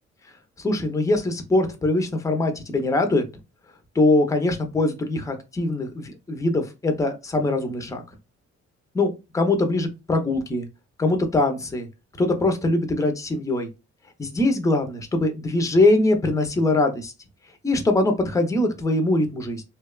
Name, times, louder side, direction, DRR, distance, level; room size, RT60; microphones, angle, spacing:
voice 1, 0.6-3.2 4.0-8.0 8.9-10.7 11.0-11.9 12.2-13.7 14.2-17.1 17.6-19.6, left 2 dB, 10° left, 5 dB, 0.5 m, -22 dB
2.8 x 2.1 x 2.2 m, 0.26 s
cardioid pair, 90°, 30 cm